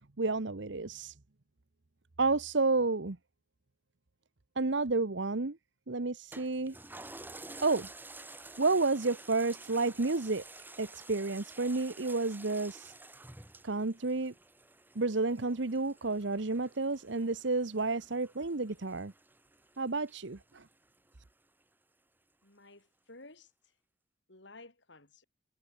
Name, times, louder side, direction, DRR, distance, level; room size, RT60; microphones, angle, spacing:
voice 1, 0.2-1.1 2.2-3.2 4.6-5.6 5.9-6.7 7.6-7.9 8.6-10.4 10.8-12.9 13.6-14.3 14.9-19.1 19.8-20.6, right 3 dB, 65° right, 1.1 m, -31 dB
Toilet flush, 6.3-21.1 21.6-21.7, right 2 dB, 10° right, 2.9 m, -51 dB
voice 2, 22.4-23.8 24.3-25.2, left 2 dB, 65° left, 4.3 m, -54 dB
head